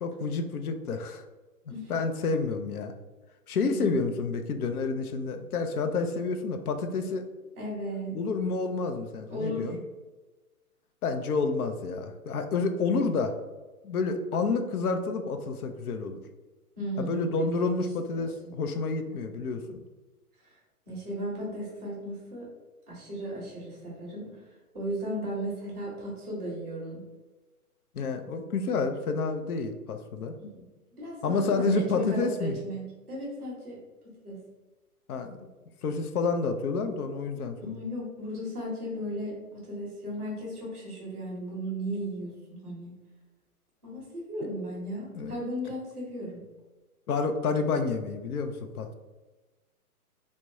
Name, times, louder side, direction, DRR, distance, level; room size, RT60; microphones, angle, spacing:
voice 1, 0.0-1.2 1.9-2.9 3.5-7.2 8.1-9.8 11.0-13.3 13.8-16.2 17.0-19.8 27.9-30.3 31.2-32.6 35.1-35.4 35.8-37.7 45.2-45.4 47.1-48.9, left 4 dB, 75° left, 7 dB, 0.5 m, -29 dB
voice 2, 7.6-8.1 9.3-9.8 16.8-17.8 18.1-18.5 19.3-19.4 20.4-20.5 20.9-22.5 22.9-24.4 24.7-27.0 30.3-30.6 30.9-32.8 33.1-34.4 37.6-42.3 42.6-42.9 43.8-46.4, equal, 5° right, -13 dB, 0.4 m, -36 dB
3.4 x 2.1 x 2.9 m, 1.2 s
figure-of-eight pair, 125°, 45 cm